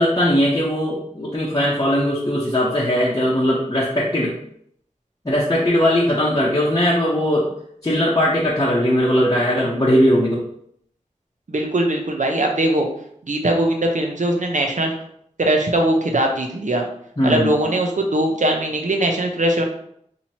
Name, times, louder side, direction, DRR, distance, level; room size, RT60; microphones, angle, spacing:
voice 1, 0.0-4.3 5.2-7.5 7.8-10.4 17.2-17.6, equal, 30° left, -7 dB, 0.8 m, -19 dB
voice 2, 11.5-12.9 13.3-14.9 15.4-16.8 17.2-19.6, right 1 dB, 70° right, 3 dB, 0.7 m, -20 dB
3.0 x 2.8 x 4.2 m, 0.68 s
wide cardioid pair, 40°, 13 cm